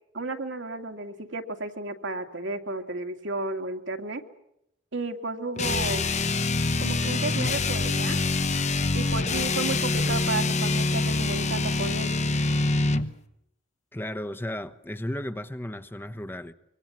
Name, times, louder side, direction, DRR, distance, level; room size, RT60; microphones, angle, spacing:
voice 1, 0.1-4.2 4.9-6.0 6.8-8.2 8.9-12.1, right 2 dB, 75° right, 2.4 m, -32 dB
sound 1, 5.6-13.1, left 3 dB, 40° left, 1.1 m, -25 dB
voice 2, 13.9-16.5, left 1 dB, 10° left, 1.0 m, -34 dB
25.5 x 24.0 x 7.3 m
head